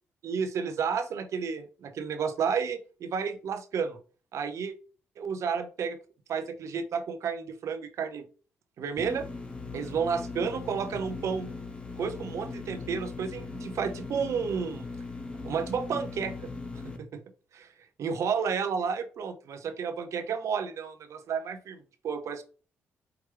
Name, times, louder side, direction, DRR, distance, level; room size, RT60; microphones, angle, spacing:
voice 1, 0.2-4.0 4.3-4.7 5.2-6.0 6.3-8.3 8.8-9.3 9.7-11.5 12.0-14.9 15.4-16.5 16.8-17.2 17.5-17.7 18.0-22.4, right 6 dB, 65° right, 8 dB, 0.8 m, -31 dB
sound 1, 9.0-17.0, left 3 dB, 20° left, 1.1 m, -39 dB
4.8 x 3.1 x 3.2 m, 0.37 s
supercardioid pair, 55°, 5 cm